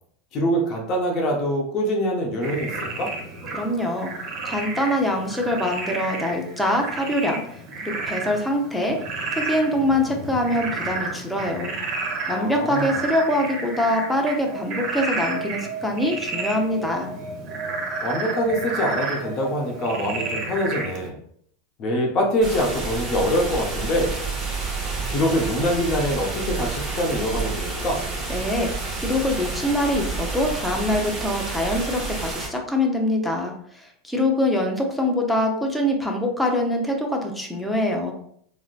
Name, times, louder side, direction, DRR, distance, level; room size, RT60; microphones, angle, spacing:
voice 1, 0.3-2.7 3.0-3.1 12.3-13.0 18.0-21.1 21.8-24.1 25.1-28.0, equal, 40° left, 0 dB, 0.8 m, -24 dB
Frog, 2.4-21.1, right 3 dB, 40° right, 0.7 m, -31 dB
voice 2, 3.5-4.1 4.4-7.4 7.8-9.0 9.3-11.7 12.3-17.1 28.3-38.1, left 1 dB, 5° left, 1 dB, 0.6 m, -24 dB
sound 1, 22.4-32.5, right 3 dB, 15° right, 1.2 m, -29 dB
3.7 x 2.1 x 2.4 m, 0.65 s
hypercardioid pair, 115°, 0 cm